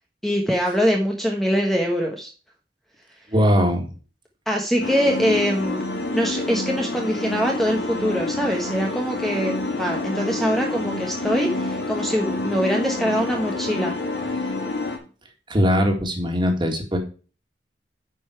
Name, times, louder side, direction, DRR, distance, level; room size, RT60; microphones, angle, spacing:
voice 1, 0.2-2.3 4.5-5.8 6.1-14.0, equal, ahead, 0 dB, 1.1 m, -23 dB
voice 2, 3.3-3.9 15.5-17.0, equal, 25° right, 3 dB, 2.0 m, -20 dB
sound 1, 4.8-15.0, left 2 dB, 85° left, 2.5 m, -28 dB
9.5 x 5.4 x 4.5 m, 0.36 s
head